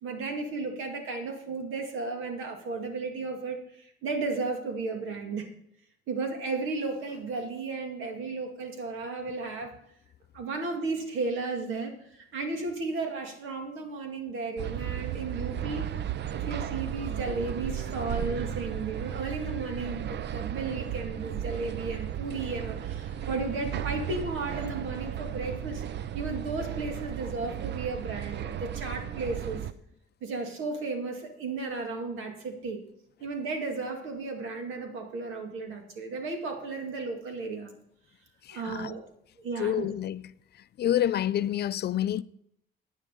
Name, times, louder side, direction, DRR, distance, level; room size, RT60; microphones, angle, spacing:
voice 1, 0.0-5.5 6.1-9.7 10.3-15.8 16.3-25.8 26.1-29.7 30.2-32.8 33.2-37.7 38.5-39.0 39.4-39.9, right 3 dB, 85° right, 2.1 m, -34 dB
sound 1, 14.6-29.7, right 10 dB, 60° right, 0.6 m, -35 dB
voice 2, 38.4-38.9 39.6-40.2 40.8-42.2, left 11 dB, 55° left, 0.4 m, -28 dB
9.7 x 9.7 x 5.3 m
cardioid pair, 90°, 20 cm